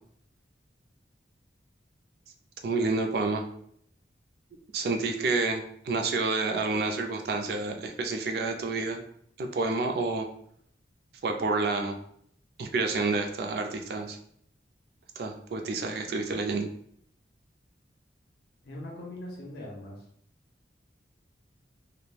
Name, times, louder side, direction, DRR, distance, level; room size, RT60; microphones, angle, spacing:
voice 1, 2.6-3.4 4.7-9.0 9.4-10.3 11.2-12.0 12.6-14.2 15.2-16.7, right 3 dB, 55° right, 4 dB, 0.3 m, -29 dB
voice 2, 18.6-20.0, left 1 dB, 65° left, -3 dB, 0.6 m, -41 dB
3.1 x 2.1 x 2.3 m, 0.68 s
head